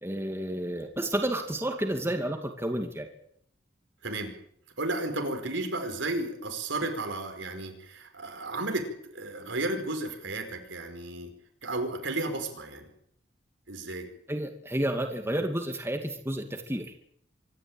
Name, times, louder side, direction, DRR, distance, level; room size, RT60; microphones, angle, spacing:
voice 1, 0.0-3.1 14.3-16.9, right 1 dB, 15° right, 4 dB, 2.4 m, -31 dB
voice 2, 4.0-4.4 4.8-11.3 11.6-12.8 13.7-14.1, right 2 dB, 85° right, 5 dB, 4.9 m, -33 dB
25.0 x 13.0 x 9.0 m, 0.67 s
head